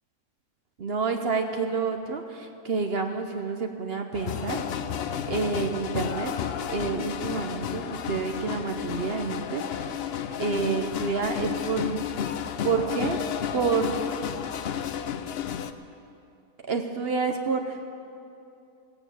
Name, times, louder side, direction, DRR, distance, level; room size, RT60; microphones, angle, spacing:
voice 1, 0.8-4.6 5.2-6.3 6.7-10.0 10.4-12.1 12.6-13.2 13.5-13.9 16.6-17.8, right 5 dB, 50° right, 5 dB, 0.8 m, -28 dB
sound 1, 4.1-15.7, left 9 dB, 90° left, 0.5 m, -32 dB
16.5 x 9.2 x 7.1 m, 2.7 s
omnidirectional pair, 1.7 m